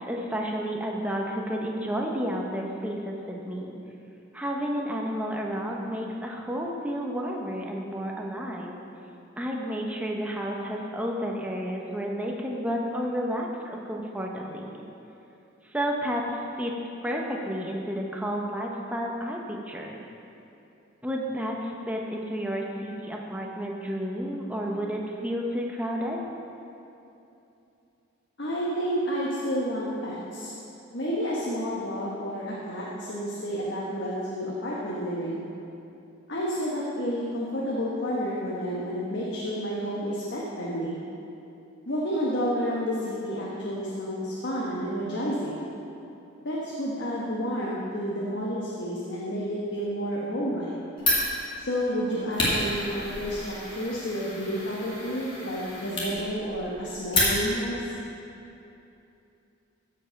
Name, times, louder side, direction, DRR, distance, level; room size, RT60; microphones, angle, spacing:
voice 1, 0.0-3.7 4.3-8.8 9.4-14.8 15.7-16.7 17.0-20.0 21.0-26.2, equal, 5° right, -1 dB, 0.9 m, -31 dB
voice 2, 28.4-30.5 30.9-35.5 36.3-41.0 41.9-45.6 46.4-50.7 51.6-57.9, equal, 55° left, -6 dB, 1.4 m, -30 dB
Fire, 51.0-57.8, left 1 dB, 25° left, 2.4 m, -30 dB
15.0 x 5.5 x 5.9 m, 2.8 s
head